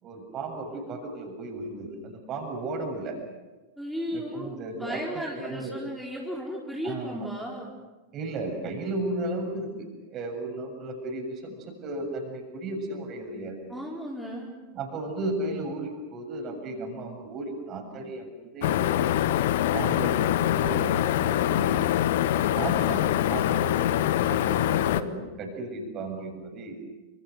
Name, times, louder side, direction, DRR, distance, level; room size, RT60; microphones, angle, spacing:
voice 1, 0.0-3.2 4.1-5.0 5.3-5.7 6.8-7.3 8.1-13.8 14.7-19.1 19.7-21.9 22.6-26.8, right 2 dB, 30° right, 4 dB, 7.2 m, -35 dB
voice 2, 3.8-7.7 13.7-14.5, equal, ahead, -3 dB, 4.7 m, -35 dB
sound 1, 18.6-25.0, left 12 dB, 55° left, 1.1 m, -24 dB
29.0 x 27.0 x 6.5 m, 1.2 s
figure-of-eight pair, 90°, 0 cm